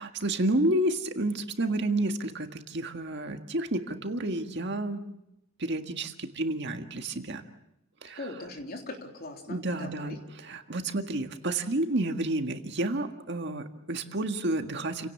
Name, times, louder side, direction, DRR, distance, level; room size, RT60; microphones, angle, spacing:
voice 1, 0.0-5.2 5.6-7.4 8.0-8.3 9.5-15.1, right 1 dB, 60° right, 6 dB, 1.8 m, -30 dB
voice 2, 8.2-10.2, left 2 dB, 50° left, 3 dB, 3.6 m, -40 dB
29.5 x 17.5 x 7.2 m, 0.86 s
head